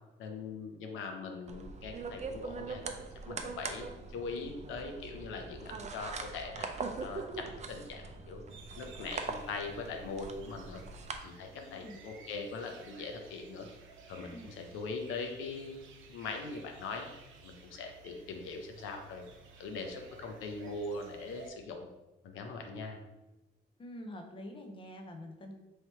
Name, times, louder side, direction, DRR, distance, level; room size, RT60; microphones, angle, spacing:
voice 1, 0.2-2.8 3.3-3.9 4.1-6.7 7.0-8.4 8.8-10.8 11.2-13.7 14.1-15.8 16.1-17.1 17.4-19.2 19.6-21.9 22.2-23.0, left 4 dB, 85° left, 4 dB, 0.6 m, -41 dB
sound 1, 1.5-11.2, right 4 dB, 35° right, 0.5 m, -42 dB
sound 2, 8.5-21.5, right 4 dB, 75° right, 0.7 m, -55 dB
voice 2, 11.5-12.0 14.3-14.5 23.8-25.5, left 1 dB, 25° left, 4 dB, 0.6 m, -46 dB
3.2 x 2.8 x 4.3 m, 1.0 s
cardioid pair, 90°, 20 cm